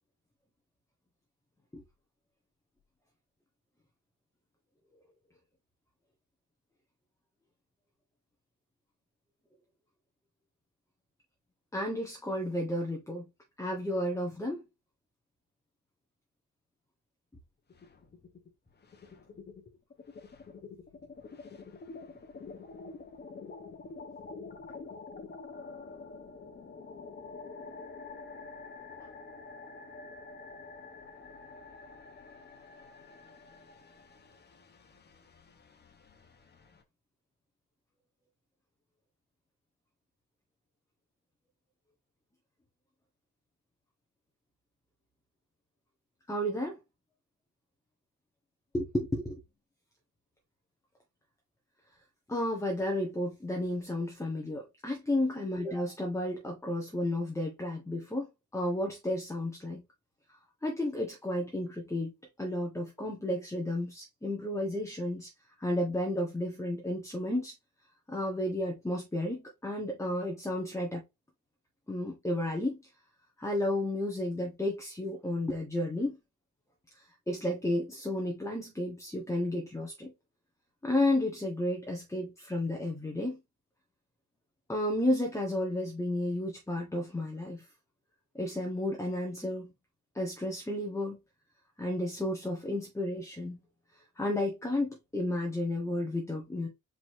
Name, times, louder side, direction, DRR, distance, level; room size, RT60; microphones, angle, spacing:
voice 1, 11.7-13.3 13.6-14.6 46.3-46.8 48.7-49.4 52.3-58.3 58.5-59.8 60.6-62.1 62.4-65.3 65.6-67.5 68.1-71.0 71.9-72.8 73.4-76.2 76.9-80.1 80.8-83.4 84.7-87.7 88.3-89.7 90.1-91.2 91.8-93.6 94.2-96.7, left 1 dB, 10° left, 1.4 m, -32 dB
sound 1, 17.7-18.5 18.8-36.8, left 4 dB, 35° left, 1.2 m, -47 dB
4.8 x 3.9 x 2.8 m
cardioid pair, 90°, 30 cm